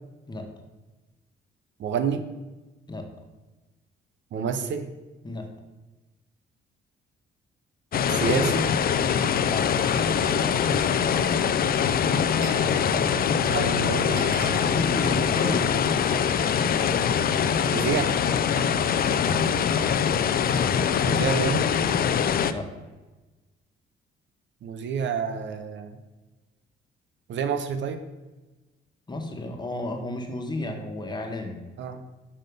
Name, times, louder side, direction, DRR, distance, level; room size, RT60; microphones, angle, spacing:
voice 1, 1.8-2.2 4.3-4.9 8.1-8.7 12.6-14.8 17.7-18.1 21.0-21.7 24.6-26.0 27.3-28.0 31.8-32.0, right 6 dB, 70° right, 9 dB, 0.7 m, -29 dB
sound 1, 7.9-22.5, left 7 dB, 50° left, 0.5 m, -23 dB
voice 2, 9.4-10.7 14.6-16.1 19.2-19.4 22.5-22.7 29.1-31.6, left 2 dB, 20° left, 3 dB, 1.4 m, -33 dB
Glass, 11.9-12.7 13.0-13.4 13.8-13.9 14.1-16.3 16.7-17.5, right 4 dB, 85° right, 1.6 m, -44 dB
6.5 x 5.7 x 5.3 m, 1.2 s
cardioid pair, 90°, 20 cm